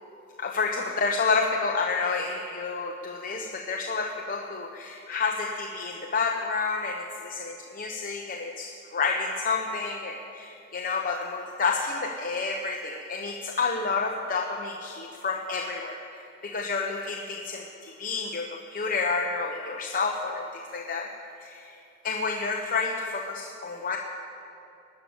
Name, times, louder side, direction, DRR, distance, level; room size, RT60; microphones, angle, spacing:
voice 1, 0.4-16.0 16.4-21.1 21.4-21.8 22.0-24.0, left 4 dB, 45° left, 1 dB, 0.9 m, -29 dB
19.0 x 10.0 x 7.1 m, 2.8 s
head